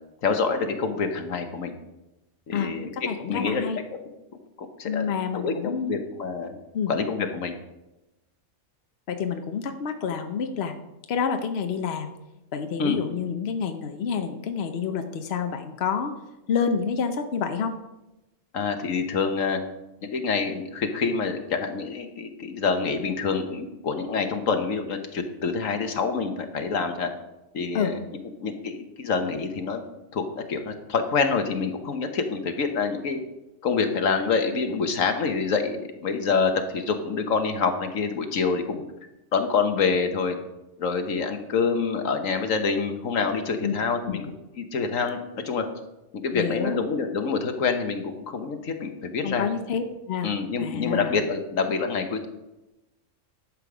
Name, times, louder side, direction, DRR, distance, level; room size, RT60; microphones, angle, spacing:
voice 1, 0.2-1.7 2.5-2.9 3.3-3.6 4.6-5.1 5.3-6.6 6.9-7.5 12.8-13.0 18.5-19.6 20.0-27.1 27.5-28.0 28.4-29.8 30.1-33.2 33.6-38.8 39.3-40.4 40.8-44.2 44.6-45.2 45.4-45.6 46.2-49.5 50.2-52.3, left 5 dB, 80° left, 6 dB, 1.5 m, -26 dB
voice 2, 2.5-3.8 4.8-5.9 6.7-6.9 9.1-10.7 11.1-12.1 12.5-16.1 16.5-17.8 27.7-27.9 43.6-43.7 44.1-44.2 46.3-46.8 49.2-50.3 50.6-51.1, left 6 dB, 55° left, 7 dB, 1.0 m, -28 dB
11.5 x 7.6 x 4.9 m, 0.97 s
omnidirectional pair, 1.3 m